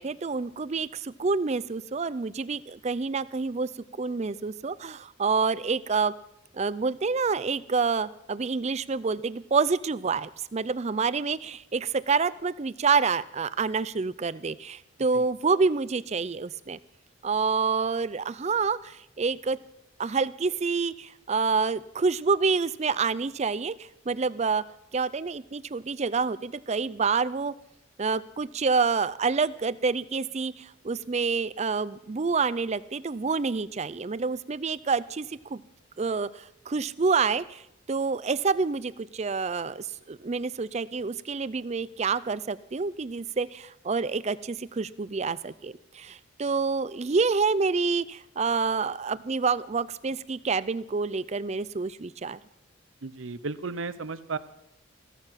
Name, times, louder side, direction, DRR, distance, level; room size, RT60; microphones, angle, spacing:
voice 1, 0.0-3.7 4.0-6.1 6.5-16.8 17.2-19.6 20.0-24.6 24.9-27.5 28.0-35.6 36.0-37.6 37.9-52.4, right 4 dB, 35° right, 17 dB, 0.4 m, -28 dB
voice 2, 53.0-54.4, right 4 dB, 75° right, 14 dB, 0.8 m, -34 dB
15.5 x 14.0 x 5.8 m, 0.83 s
head